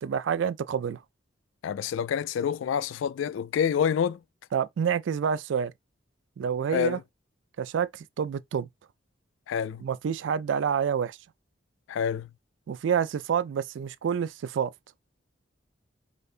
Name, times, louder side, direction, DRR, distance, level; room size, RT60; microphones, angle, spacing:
voice 1, 0.0-1.0 4.5-5.7 6.4-7.0 7.6-8.7 9.8-11.2 12.7-14.7, right 7 dB, 75° right, 0.3 m, -28 dB
voice 2, 1.6-4.2 6.7-7.0 9.5-9.8 11.9-12.3, left 8 dB, 85° left, 0.3 m, -27 dB
5.1 x 2.2 x 2.4 m
head